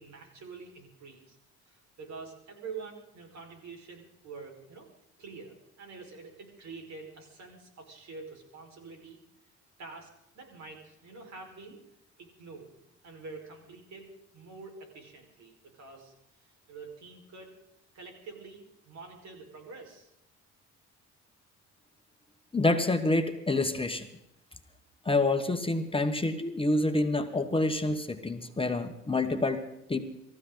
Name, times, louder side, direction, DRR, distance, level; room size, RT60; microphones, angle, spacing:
voice 1, 0.0-1.4 1.6-4.9 5.2-9.2 9.8-11.8 12.2-12.7 13.0-17.5 17.9-20.1, right 4 dB, 65° right, 2 dB, 4.9 m, -46 dB
voice 2, 22.5-24.1 25.0-30.0, left 2 dB, 20° left, 6 dB, 1.3 m, -27 dB
25.0 x 14.5 x 4.0 m, 0.83 s
cardioid pair, 90°, 30 cm